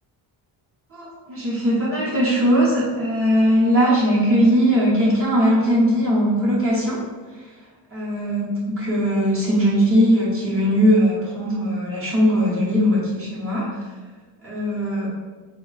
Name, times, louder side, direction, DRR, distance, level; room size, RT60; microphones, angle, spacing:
voice 1, 0.9-7.0 7.9-13.7 14.4-15.1, equal, 30° right, -6 dB, 0.9 m, -19 dB
3.7 x 2.2 x 3.9 m, 1.4 s
cardioid pair, 170°, 46 cm